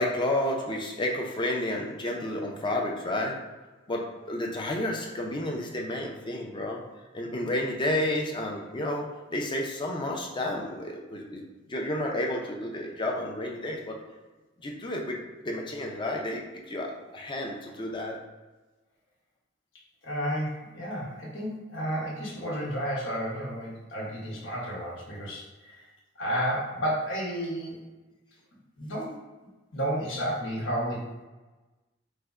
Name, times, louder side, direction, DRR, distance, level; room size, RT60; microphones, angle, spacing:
voice 1, 0.0-3.4 3.9-6.8 7.1-11.4 11.7-14.0 14.6-18.2, left 1 dB, 25° left, 0 dB, 0.5 m, -31 dB
voice 2, 20.0-25.8 26.2-27.8 28.8-29.1 29.7-31.2, equal, 85° left, -5 dB, 1.0 m, -32 dB
3.4 x 2.1 x 3.5 m, 1.2 s
head